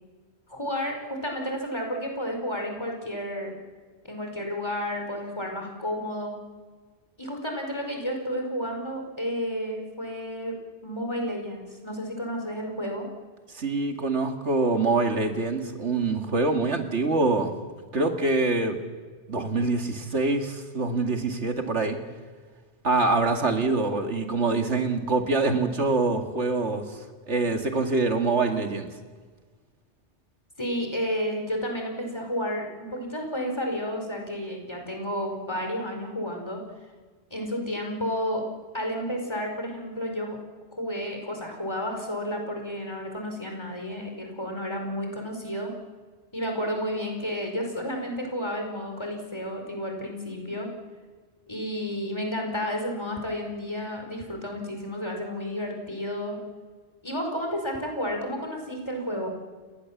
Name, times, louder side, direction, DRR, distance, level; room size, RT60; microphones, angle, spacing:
voice 1, 0.5-3.5 4.0-6.4 7.2-10.6 10.8-13.1 30.6-36.6 37.3-38.4 38.7-40.4 40.7-45.7 46.3-50.7 51.5-56.4 57.0-59.3, equal, 25° left, 2 dB, 4.9 m, -31 dB
voice 2, 13.5-17.5 17.9-18.8 19.3-22.0 22.8-27.0 27.3-28.9, right 3 dB, 80° right, 4 dB, 2.5 m, -25 dB
29.0 x 22.0 x 7.3 m, 1.5 s
omnidirectional pair, 1.2 m